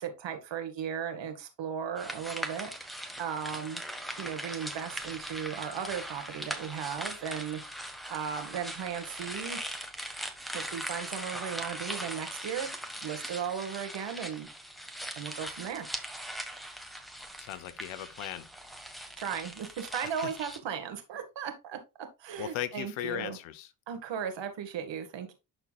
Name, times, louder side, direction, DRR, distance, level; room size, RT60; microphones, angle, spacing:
voice 1, 0.0-2.7 3.2-3.8 4.2-7.6 8.1-9.6 10.5-12.7 13.0-14.5 15.2-15.9 19.2-21.8 22.2-23.4 23.9-25.3, right 8 dB, 65° right, 2.0 m, -36 dB
sound 1, 2.0-20.6, equal, ahead, 1.6 m, -40 dB
voice 2, 17.4-18.5 22.4-23.7, left 11 dB, 85° left, 1.0 m, -37 dB
12.0 x 4.4 x 2.4 m
supercardioid pair, 60°, 46 cm